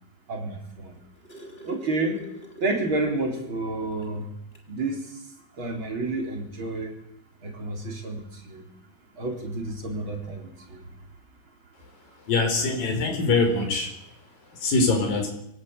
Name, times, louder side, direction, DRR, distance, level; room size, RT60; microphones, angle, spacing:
voice 1, 0.3-1.0 1.6-2.2 2.6-4.3 4.7-5.0 5.6-7.0 7.4-8.6 9.2-10.8, right 2 dB, 35° right, 1 dB, 4.4 m, -30 dB
sound 1, 1.0-3.6 4.0-4.1 4.5-4.7 5.8-5.9, right 1 dB, 15° left, 3.3 m, -45 dB
voice 2, 12.3-13.9 14.5-15.3, left 3 dB, 90° left, 3 dB, 6.1 m, -23 dB
24.5 x 17.5 x 8.2 m, 0.81 s
omnidirectional pair, 3.9 m